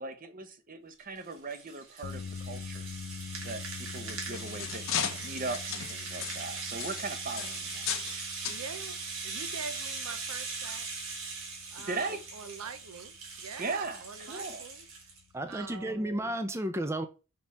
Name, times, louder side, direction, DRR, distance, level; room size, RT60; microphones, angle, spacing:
voice 1, 0.0-2.9 3.4-8.3 11.8-12.2 13.6-14.6, right 3 dB, 40° right, 0.9 m, -39 dB
Rattle (instrument), 1.0-15.2, right 4 dB, 65° right, 2.4 m, -40 dB
sound 1, 2.0-16.3, left 6 dB, 80° left, 0.4 m, -47 dB
sound 2, 3.9-8.2 8.4-8.6 9.4-9.5 10.0-10.1, left 9 dB, 65° left, 1.0 m, -36 dB
voice 2, 8.5-9.0 9.2-10.9 11.7-15.1 15.5-16.1, right 5 dB, 85° right, 0.7 m, -44 dB
voice 3, 15.3-17.1, right 1 dB, 10° right, 0.5 m, -32 dB
5.8 x 5.3 x 4.2 m
head